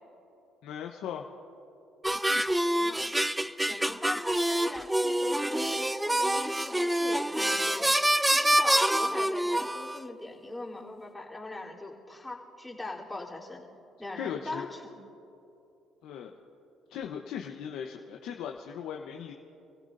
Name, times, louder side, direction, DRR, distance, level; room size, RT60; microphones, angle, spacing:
voice 1, 0.6-1.2 14.2-14.7 16.0-16.3 16.9-19.3, left 8 dB, 75° left, 2 dB, 0.9 m, -38 dB
sound 1, 2.0-10.0, right 1 dB, 10° right, 0.5 m, -26 dB
voice 2, 2.7-3.1 3.7-7.9 8.3-13.6 14.0-15.0, left 2 dB, 10° left, -5 dB, 3.5 m, -41 dB
29.5 x 16.0 x 2.6 m, 2.9 s
supercardioid pair, 70°, 0 cm